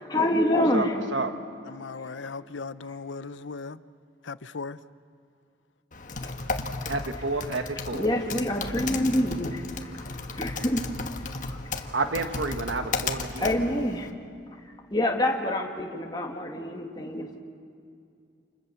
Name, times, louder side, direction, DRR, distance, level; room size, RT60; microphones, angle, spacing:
voice 1, 0.1-0.9 6.2-6.3 7.9-9.6 10.3-10.8 13.4-14.1 14.9-17.4, left 1 dB, 20° left, 0 dB, 2.1 m, -26 dB
voice 2, 0.7-1.3 6.9-8.1 11.9-13.6, right 3 dB, 85° right, 7 dB, 1.5 m, -30 dB
voice 3, 1.7-3.8 4.2-4.8, left 4 dB, 85° left, 15 dB, 0.7 m, -37 dB
Typing, 5.9-14.1, left 3 dB, 45° left, 1.4 m, -34 dB
29.5 x 28.0 x 7.0 m, 2.4 s
head